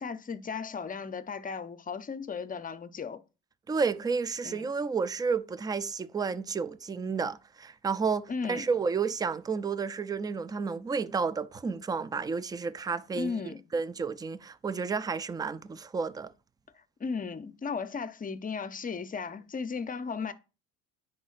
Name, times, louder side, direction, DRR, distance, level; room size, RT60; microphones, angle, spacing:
voice 1, 0.0-3.2 4.4-4.7 8.3-8.7 13.1-13.6 17.0-20.3, left 5 dB, 20° left, 0.7 m, -35 dB
voice 2, 3.7-13.4 13.7-16.3, right 5 dB, 10° right, 0.3 m, -31 dB
9.9 x 4.4 x 2.5 m
hypercardioid pair, 75°, 39 cm